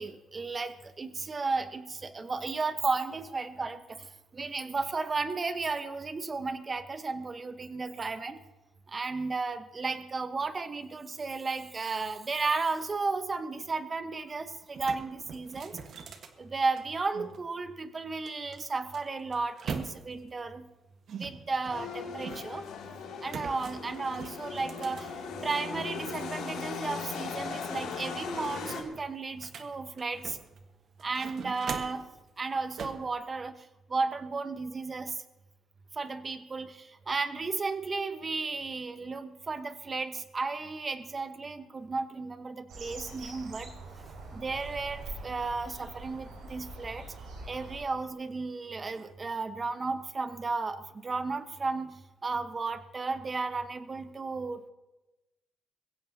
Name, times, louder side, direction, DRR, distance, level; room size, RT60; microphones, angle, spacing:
voice 1, 0.0-8.4 8.9-15.8 16.4-20.7 21.1-22.6 23.2-30.4 31.0-32.1 32.4-35.2 35.9-43.7 44.3-47.1 47.5-54.7, right 4 dB, 30° right, 9 dB, 1.1 m, -34 dB
sound 1, 14.2-14.3 14.6-17.4 18.3-20.3 21.1-22.7 23.3-25.7 26.1-27.2 27.5-27.6 28.0-30.6 31.0-32.1 32.8-33.1, right 6 dB, 65° right, 1.4 m, -43 dB
sound 2, 21.7-28.8, left 5 dB, 90° left, 2.6 m, -38 dB
sound 3, 42.7-47.8, right 2 dB, 85° right, 5.2 m, -44 dB
22.0 x 16.0 x 2.9 m, 1.0 s
cardioid pair, 90°, 0 cm